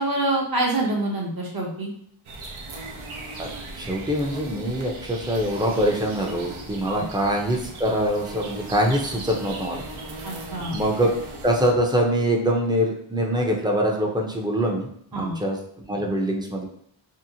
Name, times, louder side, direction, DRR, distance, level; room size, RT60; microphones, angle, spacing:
voice 1, 0.0-1.9 6.8-7.0 10.2-10.8 15.1-15.4, right 2 dB, 45° right, -1 dB, 0.8 m, -26 dB
sound 1, 2.2-11.7, right 2 dB, 80° right, 0.6 m, -37 dB
voice 2, 3.7-9.8 10.7-11.1 11.4-15.6 15.9-16.7, equal, 10° right, 0 dB, 0.5 m, -24 dB
2.8 x 2.1 x 2.7 m, 0.69 s
wide cardioid pair, 60°, 49 cm